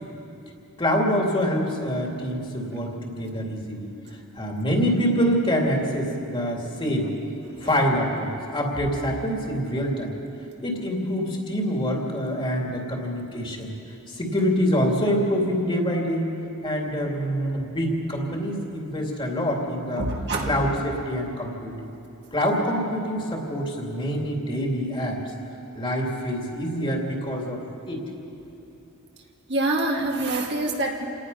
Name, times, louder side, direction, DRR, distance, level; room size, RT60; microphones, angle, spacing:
voice 1, 0.8-3.9 4.4-7.1 7.6-10.2 10.6-13.8 14.1-16.3 16.6-20.0 20.5-21.9 22.3-25.2 25.7-28.0, equal, 25° left, 0 dB, 2.7 m, -25 dB
voice 2, 20.0-20.6 29.5-31.1, right 2 dB, 50° right, 0 dB, 2.0 m, -26 dB
28.5 x 18.5 x 5.6 m, 2.8 s
head